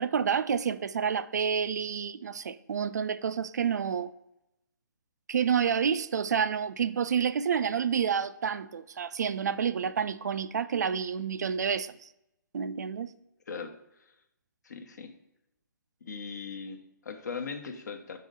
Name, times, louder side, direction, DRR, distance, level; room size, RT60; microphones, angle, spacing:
voice 1, 0.0-4.1 5.3-12.1 12.5-13.1, right 7 dB, 55° right, 0.4 m, -29 dB
voice 2, 13.5-14.1 14.6-15.1 16.1-18.2, left 5 dB, 60° left, 0.9 m, -39 dB
5.5 x 4.7 x 5.2 m
figure-of-eight pair, 135°, 11 cm